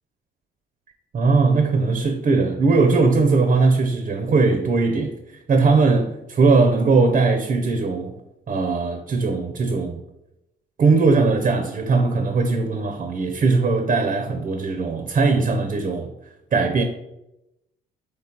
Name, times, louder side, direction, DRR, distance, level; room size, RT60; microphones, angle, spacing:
voice 1, 1.1-8.1 8.5-10.0 10.8-16.1 16.5-16.8, right 4 dB, 40° right, 0.5 m, -19 dB
3.7 x 3.1 x 4.3 m
cardioid pair, 90°, 20 cm